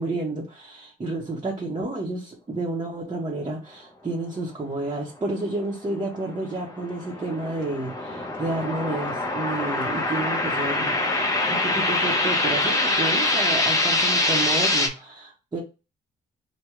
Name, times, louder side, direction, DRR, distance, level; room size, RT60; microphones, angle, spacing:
voice 1, 0.0-15.6, right 2 dB, 25° right, 0.8 m, -30 dB
sound 1, 6.5-14.9, left 2 dB, 15° left, 0.7 m, -24 dB
3.4 x 2.2 x 3.1 m
cardioid pair, 90°, 20 cm